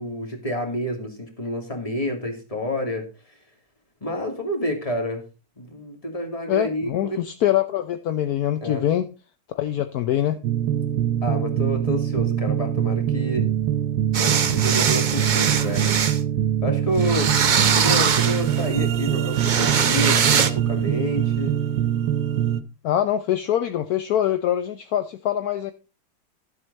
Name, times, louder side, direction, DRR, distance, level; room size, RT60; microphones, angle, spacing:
voice 1, 0.0-3.4 4.0-5.2 5.6-7.2 8.6-8.9 11.2-13.5 14.2-16.0 16.6-17.3 17.7-21.5, equal, 20° left, 2.4 m, -29 dB
voice 2, 6.5-9.1 9.5-10.4 22.8-25.7, left 11 dB, 70° left, 1.2 m, -24 dB
sound 1, 10.4-22.6, right 10 dB, 90° right, 1.3 m, -23 dB
sound 2, 14.1-16.2 17.0-18.7 19.3-20.5, right 6 dB, 55° right, 0.5 m, -22 dB
12.5 x 7.8 x 4.0 m
omnidirectional pair, 1.8 m